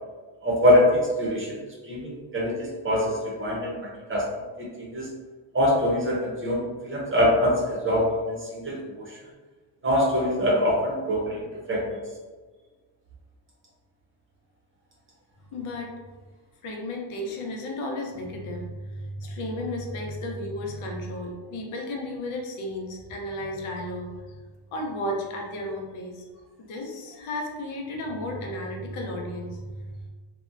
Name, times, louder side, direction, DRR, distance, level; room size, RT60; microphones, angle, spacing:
voice 1, 0.4-1.6 1.9-4.2 4.6-5.1 5.5-9.2 9.8-11.4 11.7-12.0, left 1 dB, 25° right, -4 dB, 0.6 m, -24 dB
voice 2, 15.5-15.9 16.6-24.4 24.7-26.2 26.7-30.1, left 1 dB, 75° left, 0 dB, 0.7 m, -33 dB
2.7 x 2.1 x 2.4 m, 1.4 s
cardioid pair, 130°, 50 cm